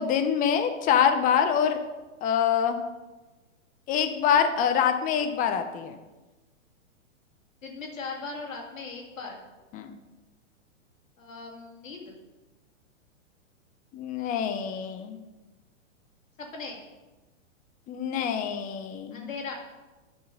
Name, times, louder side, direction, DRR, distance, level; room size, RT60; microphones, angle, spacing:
voice 1, 0.0-1.8 2.2-2.8 3.9-6.0 9.7-9.9 13.9-15.2 17.9-19.3, left 8 dB, 20° left, 7 dB, 0.6 m, -25 dB
voice 2, 7.6-9.4 11.2-12.2 16.4-16.8 19.1-19.5, left 4 dB, 85° left, 0 dB, 2.3 m, -38 dB
10.5 x 3.8 x 5.3 m, 1.2 s
hypercardioid pair, 125°, 38 cm